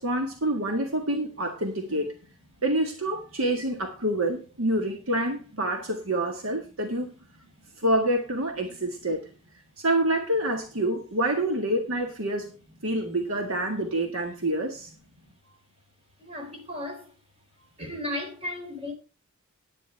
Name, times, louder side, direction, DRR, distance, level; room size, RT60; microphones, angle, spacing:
voice 1, 0.0-2.1 2.6-7.1 7.8-9.3 9.8-12.6 12.8-14.9, right 1 dB, 65° right, 1.7 m, -27 dB
voice 2, 16.2-17.1 17.8-18.9, left 1 dB, 25° right, 3.9 m, -35 dB
10.0 x 9.7 x 4.5 m
head